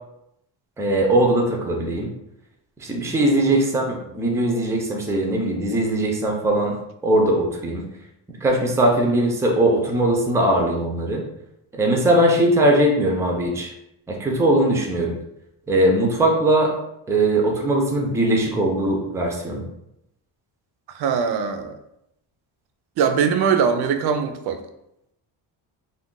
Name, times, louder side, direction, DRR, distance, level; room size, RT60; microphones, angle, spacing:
voice 1, 0.8-2.1 2.8-6.8 7.0-7.8 8.4-11.2 11.7-13.7 14.1-15.2 15.7-16.7 17.1-19.6, right 1 dB, 5° right, 1 dB, 0.3 m, -20 dB
voice 2, 20.9-21.8 23.0-24.6, right 6 dB, 65° right, 8 dB, 0.5 m, -22 dB
2.5 x 2.2 x 3.6 m, 0.81 s
cardioid pair, 130°, 42 cm